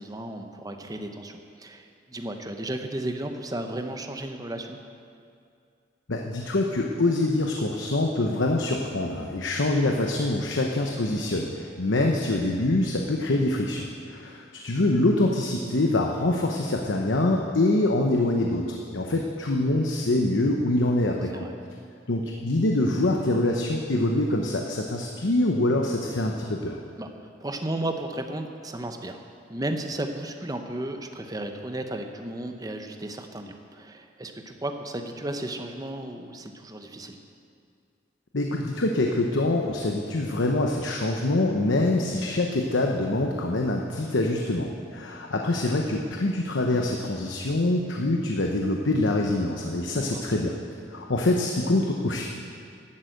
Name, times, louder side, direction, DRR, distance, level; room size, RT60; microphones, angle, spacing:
voice 1, 0.0-4.8 11.8-12.0 21.3-21.5 27.0-29.2 29.5-37.2 49.9-50.2, right 1 dB, 20° right, 5 dB, 0.8 m, -34 dB
voice 2, 6.1-21.5 22.1-26.8 38.3-50.6 50.9-52.2, left 2 dB, 90° left, 1 dB, 0.9 m, -25 dB
12.0 x 8.3 x 7.9 m, 2.4 s
head